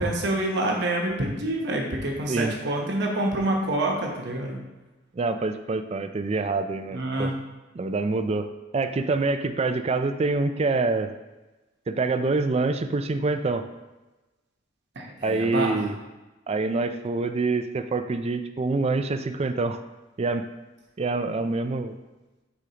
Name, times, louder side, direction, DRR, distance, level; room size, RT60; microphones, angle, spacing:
voice 1, 0.0-4.6 6.9-7.3 14.9-15.9, right 1 dB, 60° right, 0 dB, 1.0 m, -27 dB
voice 2, 5.2-7.3 7.8-8.5 8.7-11.1 11.9-13.6 15.2-15.9 16.5-19.8 20.2-20.5 21.0-21.9, right 3 dB, 35° right, 9 dB, 0.4 m, -26 dB
8.1 x 5.1 x 2.9 m, 1.1 s
head